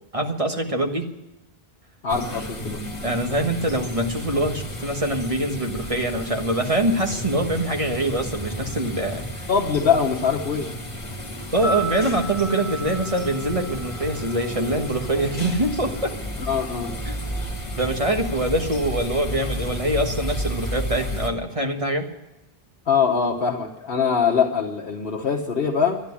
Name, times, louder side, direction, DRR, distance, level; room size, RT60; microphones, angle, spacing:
voice 1, 0.1-1.1 3.0-9.4 11.5-16.2 17.0-17.1 17.8-22.1, right 1 dB, 35° right, 3 dB, 1.5 m, -24 dB
voice 2, 2.0-2.8 9.5-10.7 16.5-17.0 22.9-26.0, left 6 dB, 65° left, -1 dB, 1.4 m, -22 dB
sound 1, 2.1-21.3, left 1 dB, 30° left, 1.9 m, -33 dB
sound 2, 5.7-21.6 22.0-22.1 22.2-22.3 23.6-23.9, equal, 10° right, 5.6 m, -44 dB
sound 3, 11.5-15.6 15.9-16.0, right 2 dB, 90° right, 6.9 m, -34 dB
13.0 x 10.5 x 9.7 m, 0.94 s
omnidirectional pair, 1.0 m